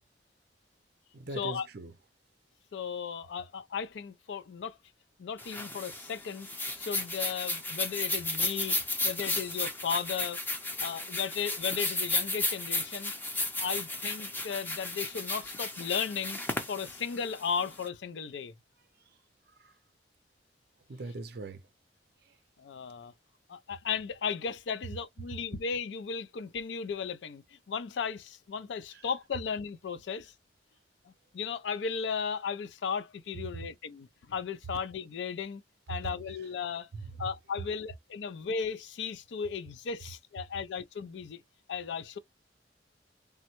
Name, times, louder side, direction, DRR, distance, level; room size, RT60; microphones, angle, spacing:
voice 1, 1.1-2.0 9.0-9.3 10.7-11.1 18.9-19.8 20.9-21.7 22.2-22.4 28.9-29.1 35.9-36.0 36.3-36.5 36.9-37.3, right 3 dB, 60° right, 0.5 m, -43 dB
voice 2, 2.7-4.8 5.2-6.5 6.8-8.8 9.0-10.4 10.8-13.1 13.6-16.4 16.7-18.5 22.6-23.1 23.5-30.3 31.1-35.6 35.9-36.9 37.2-41.4 41.7-42.2, left 6 dB, 80° left, 0.4 m, -35 dB
sound 1, 5.4-17.8, left 2 dB, 10° left, 0.6 m, -34 dB
3.4 x 2.1 x 2.9 m
head